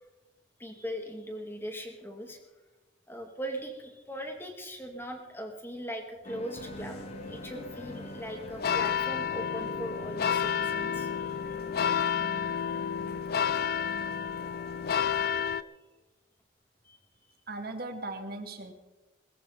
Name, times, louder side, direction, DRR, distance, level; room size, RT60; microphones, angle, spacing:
voice 1, 0.6-2.4 3.1-7.0 7.3-11.6 16.9-17.0, equal, 10° left, 3 dB, 2.2 m, -40 dB
sound 1, 6.2-15.5, left 1 dB, 35° left, 1.8 m, -44 dB
sound 2, 6.6-15.6, left 8 dB, 50° left, 0.5 m, -31 dB
voice 2, 17.5-18.7, right 2 dB, 50° right, 5 dB, 2.0 m, -38 dB
21.0 x 14.0 x 4.0 m, 1.1 s
head